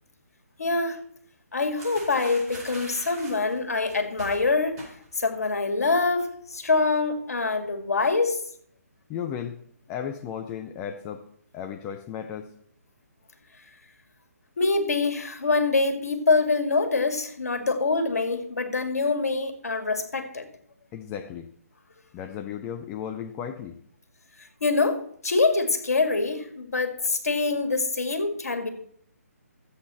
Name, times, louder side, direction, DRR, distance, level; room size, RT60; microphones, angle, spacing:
voice 1, 0.6-1.0 1.5-4.8 5.1-8.4 14.6-20.5 24.6-28.7, left 3 dB, 70° left, 7 dB, 2.2 m, -25 dB
sound 1, 1.8-5.3 5.6-5.9 6.2-6.8, right 2 dB, 25° right, 4.6 m, -44 dB
voice 2, 9.1-9.6 9.9-11.3 11.5-12.5 20.9-21.5 22.1-23.8, left 8 dB, 15° left, 6 dB, 0.5 m, -35 dB
13.0 x 8.2 x 4.3 m, 0.63 s
figure-of-eight pair, 145°, 9 cm